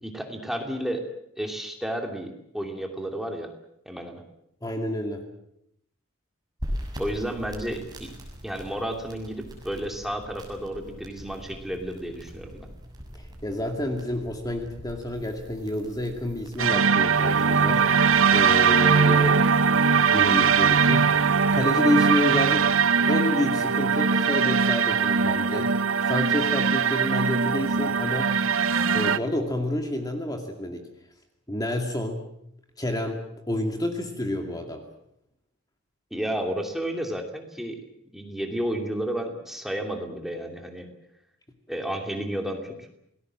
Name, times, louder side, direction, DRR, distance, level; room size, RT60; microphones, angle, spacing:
voice 1, 0.0-1.1 1.4-3.5 3.9-4.2 7.0-8.1 8.4-12.7 36.1-37.8 38.1-40.9 41.7-42.9, right 1 dB, ahead, 3 dB, 2.7 m, -32 dB
voice 2, 4.6-5.2 13.1-18.0 18.3-19.5 20.1-21.1 21.5-22.7 23.1-25.8 26.1-28.3 28.9-30.8 31.5-32.3 32.8-33.2 33.5-34.8, left 1 dB, 20° left, 4 dB, 2.3 m, -29 dB
sound 1, 6.6-16.6, equal, 20° right, 6.8 m, -41 dB
sound 2, 16.6-29.2, right 5 dB, 70° right, 0.9 m, -21 dB
28.0 x 19.5 x 7.5 m, 0.77 s
head